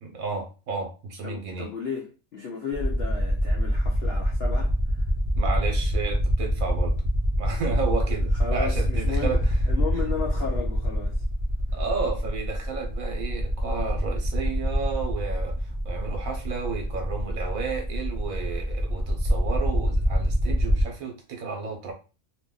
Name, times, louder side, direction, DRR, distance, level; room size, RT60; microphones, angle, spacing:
voice 1, 0.0-1.7 5.3-7.0 7.4-9.6 9.9-10.1 11.7-21.9, right 5 dB, 70° right, 1.2 m, -32 dB
voice 2, 1.2-5.1 8.3-9.4 9.7-11.2, left 5 dB, 65° left, 0.6 m, -34 dB
sound 1, 2.7-20.8, equal, 15° right, 0.6 m, -26 dB
2.8 x 2.5 x 3.7 m
omnidirectional pair, 1.6 m